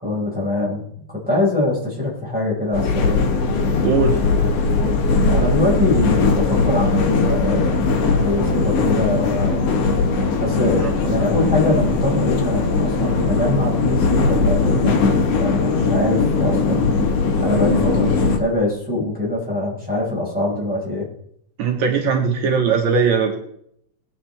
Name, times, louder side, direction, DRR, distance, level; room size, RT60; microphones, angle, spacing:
voice 1, 0.0-3.2 5.3-9.7 10.4-17.0 17.4-21.0, left 1 dB, 5° right, -4 dB, 4.6 m, -23 dB
sound 1, 2.7-18.4, left 4 dB, 65° left, 2.2 m, -19 dB
voice 2, 3.8-4.2 10.8-10.9 21.6-23.4, right 5 dB, 70° right, 1 dB, 2.6 m, -19 dB
21.5 x 8.8 x 3.4 m, 0.71 s
omnidirectional pair, 3.3 m